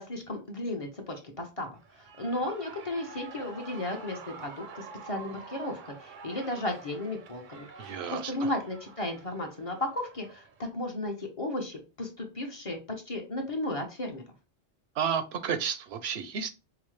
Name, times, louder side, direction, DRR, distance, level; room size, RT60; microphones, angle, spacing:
voice 1, 0.0-1.7 2.2-10.5 10.7-12.8 13.1-14.2, left 1 dB, 35° left, 2 dB, 0.7 m, -34 dB
Shout / Cheering, 1.8-10.7, right 5 dB, 60° right, 0.6 m, -48 dB
voice 2, 7.8-8.5 15.0-16.5, right 7 dB, 85° right, 10 dB, 0.9 m, -32 dB
4.7 x 2.1 x 3.1 m, 0.30 s
omnidirectional pair, 1.0 m